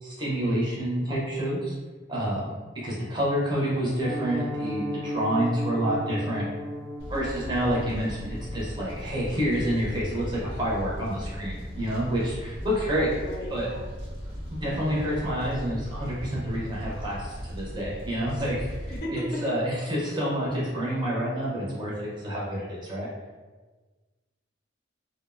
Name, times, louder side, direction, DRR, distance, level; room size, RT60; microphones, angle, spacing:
voice 1, 0.0-1.8 2.1-2.5 2.8-6.5 7.1-13.1 13.5-13.7 14.5-18.7 19.1-23.1, equal, 25° right, -6 dB, 0.6 m, -28 dB
Piano, 4.0-14.9 15.2-15.4 15.7-15.8 16.2-16.4 16.8-16.9, equal, 90° right, 0.9 m, -38 dB
Fire, 7.0-19.0, equal, 60° right, 0.7 m, -37 dB
voice 2, 13.0-13.8 18.9-19.6, equal, 50° left, -2 dB, 0.5 m, -35 dB
2.5 x 2.0 x 2.4 m, 1.3 s
head